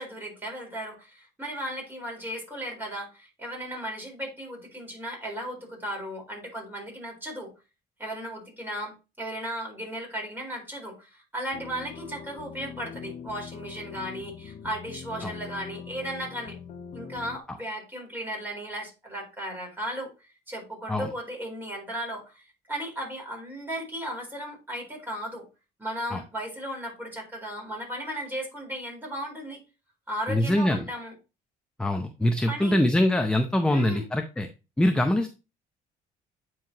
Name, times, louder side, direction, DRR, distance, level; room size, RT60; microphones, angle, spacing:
voice 1, 0.0-7.5 8.0-16.6 16.9-20.1 20.5-25.4 25.8-29.6 30.1-31.1 32.5-32.8 33.7-34.1, equal, 10° right, 0 dB, 4.2 m, -36 dB
sound 1, 11.5-17.4, left 7 dB, 50° left, 0.7 m, -42 dB
voice 2, 30.3-30.9 31.8-34.5 34.8-35.3, left 1 dB, 5° left, 6 dB, 0.6 m, -23 dB
9.1 x 4.7 x 2.9 m, 0.29 s
cardioid pair, 110°, 17 cm